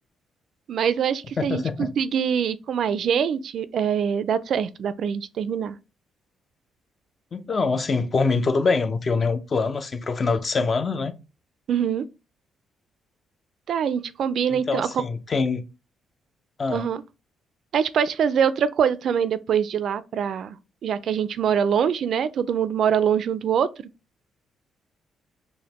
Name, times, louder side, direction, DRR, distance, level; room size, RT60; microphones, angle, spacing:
voice 1, 0.7-5.8 11.7-12.1 13.7-15.0 16.7-17.0 17.7-20.6 20.8-23.9, right 8 dB, 65° right, 0.3 m, -24 dB
voice 2, 1.4-1.9 7.3-11.1 14.5-15.6 16.6-16.9, left 4 dB, 40° left, 0.5 m, -24 dB
5.0 x 2.1 x 2.9 m
cardioid pair, 90°, 0 cm